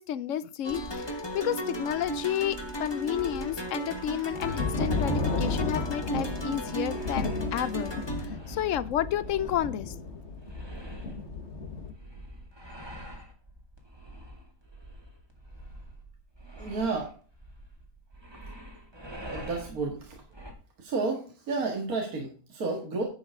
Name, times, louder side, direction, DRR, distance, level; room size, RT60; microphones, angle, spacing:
voice 1, 0.0-7.9 8.2-9.9, left 11 dB, 65° left, 0.8 m, -31 dB
sound 1, 0.6-8.3, right 1 dB, 15° left, 1.2 m, -35 dB
sound 2, 0.7-20.5, equal, 15° right, 2.3 m, -46 dB
sound 3, 4.3-11.9, left 3 dB, 45° left, 1.7 m, -33 dB
voice 2, 16.6-17.2 19.2-20.2 20.8-23.0, right 3 dB, 60° right, 2.2 m, -31 dB
10.5 x 7.7 x 3.6 m
omnidirectional pair, 1.7 m